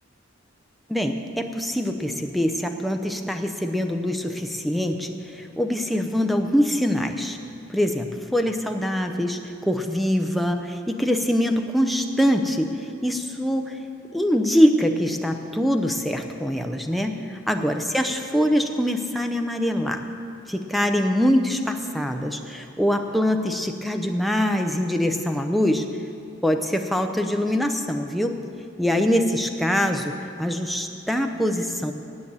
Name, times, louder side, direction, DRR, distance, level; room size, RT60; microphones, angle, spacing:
voice 1, 0.9-7.4 7.7-13.8 14.1-20.0 20.5-25.9 26.4-28.4 28.8-31.9, equal, ahead, 4 dB, 0.6 m, -24 dB
9.5 x 8.1 x 8.8 m, 2.7 s
head